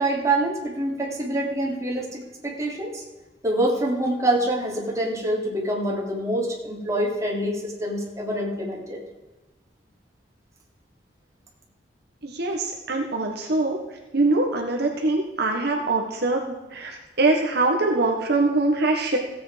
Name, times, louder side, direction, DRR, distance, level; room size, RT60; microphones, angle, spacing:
voice 1, 0.0-3.0 3.4-9.0, right 1 dB, 15° right, -3 dB, 3.3 m, -26 dB
voice 2, 12.2-13.8 14.1-19.2, right 2 dB, 60° right, 1 dB, 1.6 m, -23 dB
16.0 x 8.4 x 5.2 m, 1.1 s
head